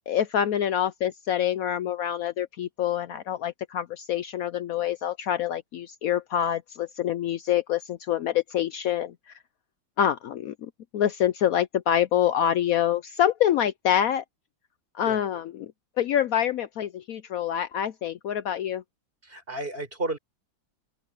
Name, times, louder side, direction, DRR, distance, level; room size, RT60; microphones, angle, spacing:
voice 1, 0.1-9.1 10.0-14.2 14.9-15.7 16.0-18.8, left 10 dB, 85° left, 0.7 m, -26 dB
voice 2, 19.2-20.2, right 2 dB, 25° right, 5.3 m, -32 dB
open air
omnidirectional pair, 2.2 m